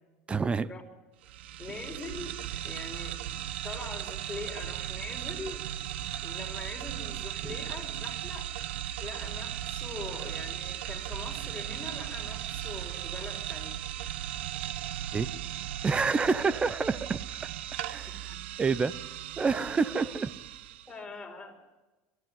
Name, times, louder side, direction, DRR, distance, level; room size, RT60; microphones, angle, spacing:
voice 1, 0.3-0.7 7.4-7.6 15.1-15.3 15.8-17.5 17.8-18.1 18.6-18.9 19.4-20.3, right 4 dB, 20° right, 18 dB, 0.7 m, -28 dB
sound 1, 1.2-20.9, right 12 dB, 90° right, 0.8 m, -37 dB
voice 2, 1.6-3.2 3.6-5.6 6.2-8.5 9.0-13.8 18.1-18.2 20.9-21.6, left 3 dB, 15° left, 2 dB, 4.8 m, -42 dB
22.5 x 14.5 x 9.5 m, 1.2 s
supercardioid pair, 120°, 6 cm